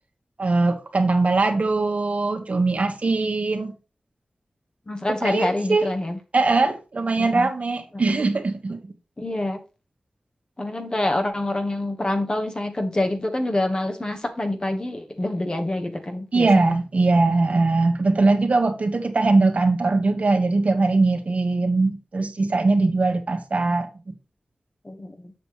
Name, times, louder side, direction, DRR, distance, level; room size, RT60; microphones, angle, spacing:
voice 1, 0.4-3.7 5.2-5.9 6.3-8.8 16.3-24.1, right 3 dB, 65° right, 1.2 m, -21 dB
voice 2, 4.9-6.2 7.2-7.5 7.9-8.2 9.2-9.6 10.6-16.8 22.8-22.9 24.8-25.3, left 1 dB, 35° left, 1.4 m, -26 dB
6.8 x 6.7 x 3.1 m
cardioid pair, 50°, 3 cm